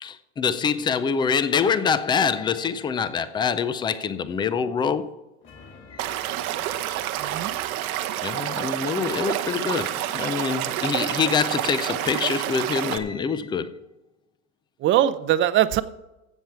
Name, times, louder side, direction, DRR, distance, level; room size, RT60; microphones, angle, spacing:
voice 1, 0.0-5.2 5.9-6.1 8.2-13.8, left 6 dB, 10° left, 0.4 m, -25 dB
sound 1, 5.4-8.6, left 4 dB, 30° left, 2.6 m, -50 dB
Stream / Liquid, 6.0-13.0, right 13 dB, 90° right, 1.1 m, -28 dB
voice 2, 7.2-7.6 14.8-15.8, right 12 dB, 30° right, 0.6 m, -21 dB
16.0 x 7.2 x 4.5 m
supercardioid pair, 140°, 42 cm